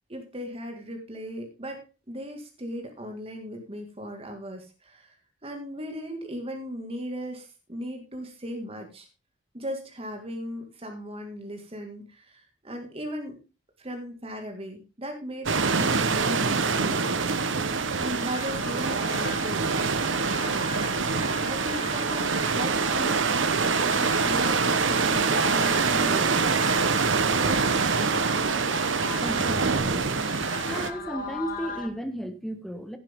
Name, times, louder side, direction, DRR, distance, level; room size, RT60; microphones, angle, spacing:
voice 1, 0.1-5.2 5.4-9.1 9.5-13.4 13.8-17.2 18.0-20.7 21.5-26.5, equal, 30° right, 2.0 m, -37 dB
sound 1, 15.5-30.9, right 4 dB, 75° right, 1.0 m, -25 dB
sound 2, 17.7-31.9, left 4 dB, 45° left, 1.6 m, -39 dB
voice 2, 29.2-30.2 30.7-33.0, right 1 dB, ahead, 1.3 m, -34 dB
16.0 x 7.7 x 3.6 m
head